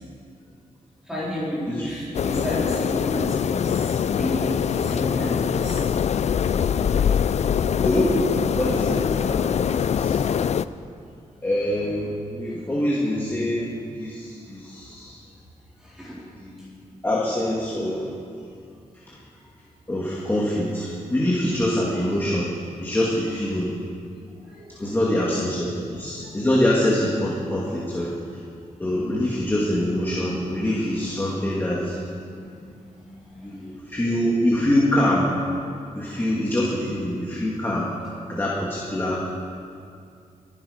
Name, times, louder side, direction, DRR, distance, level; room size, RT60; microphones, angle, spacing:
voice 1, 1.1-5.8 12.7-12.8 15.8-16.2 24.5-24.8 32.3-33.9, equal, 5° right, -9 dB, 4.3 m, -32 dB
sound 1, 2.1-10.7, left 7 dB, 55° left, 0.4 m, -23 dB
voice 2, 7.4-10.2 11.4-15.2 16.4-16.8 17.0-18.1 19.1-19.2 19.9-22.5 22.8-23.7 24.8-28.1 28.8-32.0 33.3-35.3 36.0-37.9 38.3-39.2, left 1 dB, 15° left, -5 dB, 2.1 m, -25 dB
24.5 x 11.0 x 5.1 m, 2.4 s
wide cardioid pair, 150°, 14 cm